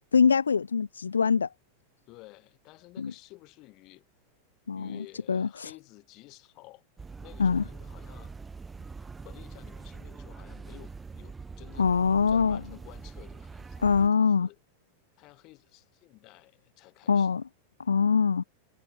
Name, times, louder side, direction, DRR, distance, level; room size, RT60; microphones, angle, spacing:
voice 1, 0.1-1.5 3.0-3.1 4.7-5.7 7.4-7.6 11.8-12.6 13.8-14.5 17.1-17.4 17.8-18.4, left 6 dB, 75° left, 0.4 m, -24 dB
voice 2, 2.1-4.0 4.7-6.8 7.2-8.3 8.8-12.0 12.3-14.6 15.2-17.3, left 21 dB, 40° left, 5.7 m, -52 dB
sound 1, 7.0-14.1, right 4 dB, 15° right, 1.0 m, -44 dB
figure-of-eight pair, 90°, 0 cm